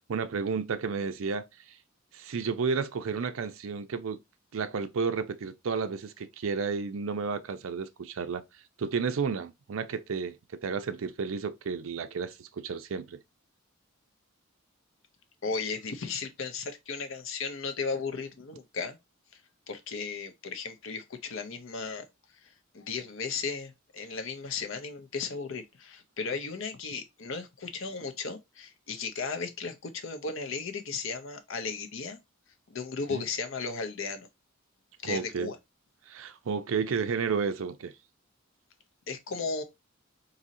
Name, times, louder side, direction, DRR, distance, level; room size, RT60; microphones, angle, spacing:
voice 1, 0.0-1.8 2.1-4.2 4.5-8.4 8.8-10.4 10.6-13.2 33.1-33.2 35.0-35.5 36.1-37.9, right 5 dB, 70° right, 0.5 m, -32 dB
voice 2, 15.4-19.0 19.7-22.0 22.7-32.2 32.7-34.3 35.0-35.6 39.1-39.6, left 4 dB, 65° left, 0.7 m, -35 dB
4.0 x 2.7 x 2.6 m
head